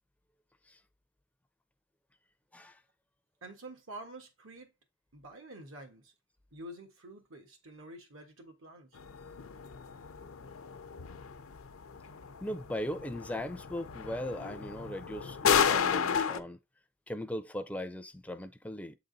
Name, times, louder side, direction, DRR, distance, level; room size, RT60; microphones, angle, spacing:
voice 1, 3.4-4.7 5.1-6.1 6.5-8.9, right 1 dB, 80° right, 1.7 m, -48 dB
sound 1, 9.0-16.4, left 7 dB, 85° left, 0.6 m, -33 dB
voice 2, 12.4-16.6 17.1-18.9, left 1 dB, 5° left, 0.4 m, -38 dB
7.4 x 3.9 x 4.0 m
head